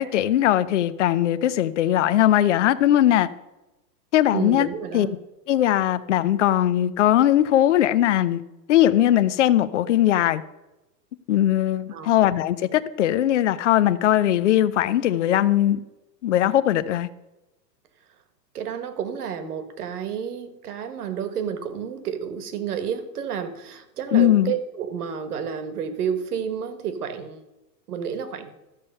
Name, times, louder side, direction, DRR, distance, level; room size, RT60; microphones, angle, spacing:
voice 1, 0.0-3.3 4.1-4.7 4.9-5.1 5.5-8.4 8.7-10.4 11.3-15.8 16.2-17.1 24.1-24.5, left 12 dB, 45° left, 14 dB, 0.5 m, -20 dB
voice 2, 4.3-5.1 11.9-12.2 18.5-27.4 27.9-28.5, right 7 dB, 60° right, 11 dB, 1.5 m, -30 dB
13.0 x 7.1 x 5.4 m, 0.98 s
supercardioid pair, 170°, 50 cm